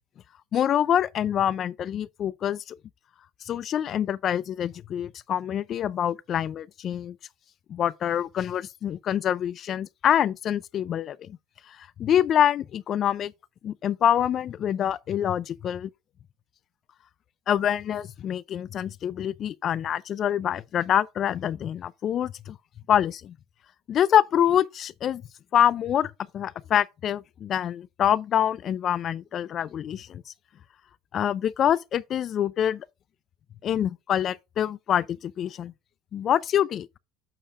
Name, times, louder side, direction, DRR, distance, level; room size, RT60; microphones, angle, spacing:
voice 1, 0.5-2.8 3.5-7.2 7.7-11.4 11.7-13.3 13.6-15.9 17.5-22.6 22.9-23.4 23.9-25.2 25.5-30.2 31.1-32.9 33.6-35.7 36.1-36.9, left 10 dB, 40° left, 0.4 m, -25 dB
8.8 x 6.6 x 2.4 m
supercardioid pair, 115°, 0 cm